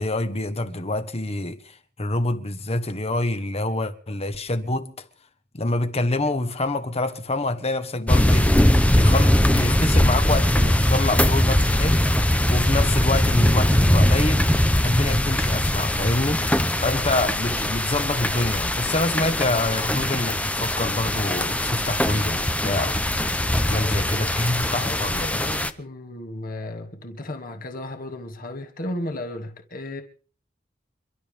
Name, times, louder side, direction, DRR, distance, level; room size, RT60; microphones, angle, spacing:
voice 1, 0.0-5.1 5.5-8.5 8.9-12.1 12.5-14.5 14.8-16.5 16.8-23.0 23.7-25.5, left 2 dB, 35° left, 1.4 m, -26 dB
sound 1, 8.1-25.7, left 1 dB, 5° left, 0.8 m, -21 dB
voice 2, 23.6-24.4 24.8-25.0 25.4-30.0, left 1 dB, 50° left, 2.3 m, -34 dB
29.0 x 12.5 x 3.6 m
head